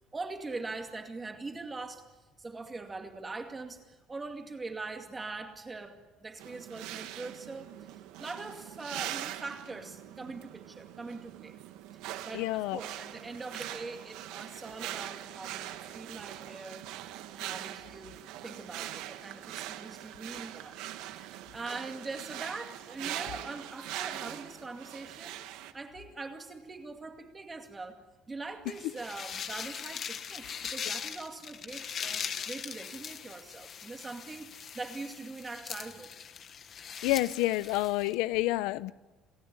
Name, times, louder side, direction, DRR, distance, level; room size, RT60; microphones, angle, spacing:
voice 1, 0.1-2.1 2.4-7.8 8.2-11.6 12.2-16.9 17.3-20.8 21.2-36.1, right 3 dB, 15° right, 2.3 m, -42 dB
sound 1, 6.4-25.7, right 13 dB, 70° right, 1.7 m, -42 dB
voice 2, 12.3-12.8 37.0-38.9, left 17 dB, 90° left, 0.8 m, -28 dB
sound 2, 28.7-38.1, left 7 dB, 30° left, 1.3 m, -40 dB
29.0 x 19.0 x 9.8 m
cardioid pair, 175°, 0 cm